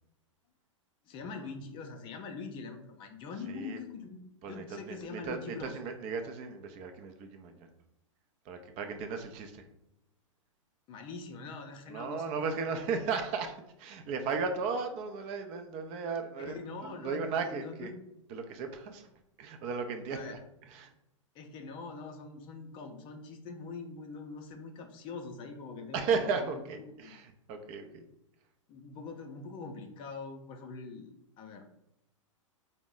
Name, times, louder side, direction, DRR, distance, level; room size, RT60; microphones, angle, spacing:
voice 1, 1.1-5.8 10.9-12.3 16.4-17.9 20.1-20.4 21.3-27.2 28.7-31.6, left 4 dB, 30° left, 5 dB, 0.5 m, -43 dB
voice 2, 3.5-3.8 4.4-7.7 8.5-9.6 11.9-16.5 16.8-17.9 18.3-19.1 19.4-20.4 20.7-20.9 25.9-28.0, right 5 dB, 35° right, 6 dB, 0.5 m, -35 dB
3.8 x 2.1 x 3.6 m, 0.83 s
figure-of-eight pair, 105°, 17 cm